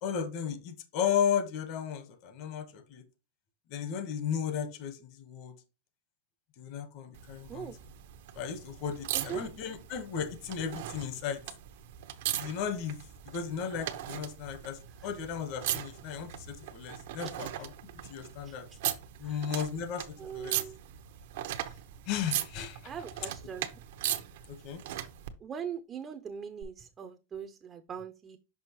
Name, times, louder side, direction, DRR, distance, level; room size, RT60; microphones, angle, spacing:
voice 1, 0.0-3.0 3.7-5.5 6.6-7.7 8.3-11.4 12.4-13.0 13.2-17.7 18.1-18.7 19.2-20.6 22.1-22.9 24.5-24.8, left 8 dB, 45° left, 1.2 m, -35 dB
sound 1, 7.1-25.3 26.6-26.7, right 12 dB, 65° right, 0.8 m, -39 dB
voice 2, 20.2-20.8 22.8-23.7 25.4-28.4, right 7 dB, 20° right, 0.5 m, -41 dB
6.1 x 5.2 x 3.0 m
supercardioid pair, 145°, 0 cm